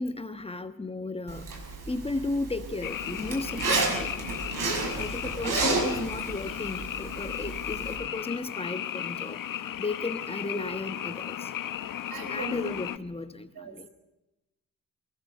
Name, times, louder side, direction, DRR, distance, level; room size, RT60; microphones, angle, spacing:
voice 1, 0.0-1.5 1.9-4.2 5.0-9.4 9.8-11.5 12.2-13.9, left 3 dB, 15° left, 10 dB, 1.2 m, -34 dB
Zipper (clothing), 1.3-8.0, right 3 dB, 65° right, 5.9 m, -32 dB
Frog, 2.8-13.0, left 10 dB, 65° left, 0.8 m, -36 dB
voice 2, 12.1-12.7 13.6-13.9, right 1 dB, 80° right, 8 dB, 4.1 m, -38 dB
23.0 x 19.5 x 6.7 m, 0.99 s
wide cardioid pair, 120°, 35 cm